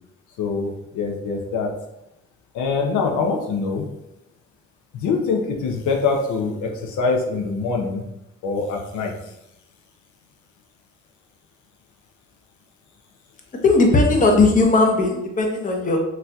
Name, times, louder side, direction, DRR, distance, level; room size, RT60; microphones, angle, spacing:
voice 1, 0.4-1.7 2.5-3.9 4.9-8.0 8.4-9.1, left 4 dB, 75° left, 2 dB, 0.6 m, -24 dB
voice 2, 13.6-16.0, left 3 dB, 25° left, 2 dB, 0.7 m, -17 dB
4.0 x 2.7 x 2.3 m, 0.86 s
cardioid pair, 90°, 30 cm